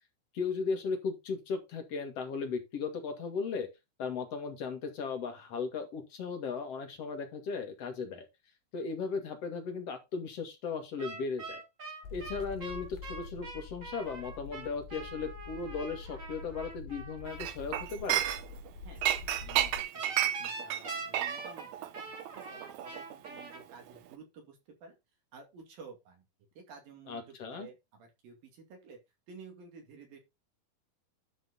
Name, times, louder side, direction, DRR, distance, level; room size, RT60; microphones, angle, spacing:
voice 1, 0.3-3.7 4.0-8.3 8.7-11.6 12.1-18.3 27.1-27.7, left 5 dB, 50° left, 2.6 m, -36 dB
sound 1, 11.0-17.5 19.9-23.6, right 3 dB, 30° right, 1.6 m, -44 dB
sound 2, 12.0-19.8, left 5 dB, 80° left, 2.8 m, -46 dB
Chink clink, 17.4-18.7 19.0-23.6 23.9-24.1, right 11 dB, 90° right, 1.5 m, -32 dB
voice 2, 19.4-21.9 22.4-25.0 25.3-26.2 26.6-29.0 29.3-30.2, right 5 dB, 70° right, 4.3 m, -52 dB
11.5 x 5.1 x 4.1 m
omnidirectional pair, 4.2 m